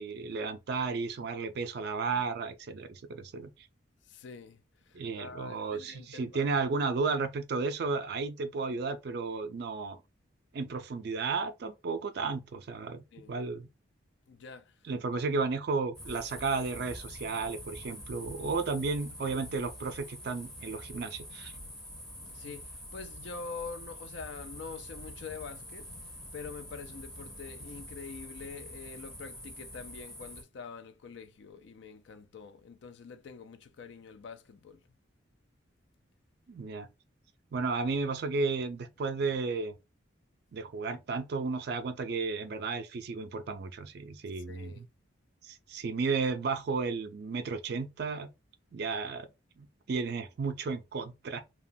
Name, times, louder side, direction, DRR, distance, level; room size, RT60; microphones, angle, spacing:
voice 1, 0.0-3.5 4.9-10.0 10.5-13.7 14.9-21.5 36.5-36.9 37.5-39.7 40.5-44.9 45.5-48.3 48.7-49.3 49.6-51.4, right 4 dB, 55° right, 0.4 m, -33 dB
voice 2, 4.1-4.6 4.9-6.5 13.1-13.3 14.3-14.7 15.1-15.2 22.2-25.9 26.3-34.8 44.5-44.8, left 5 dB, 65° left, 0.4 m, -45 dB
sound 1, 15.9-30.4, equal, 5° left, 0.5 m, -46 dB
2.8 x 2.2 x 2.6 m
head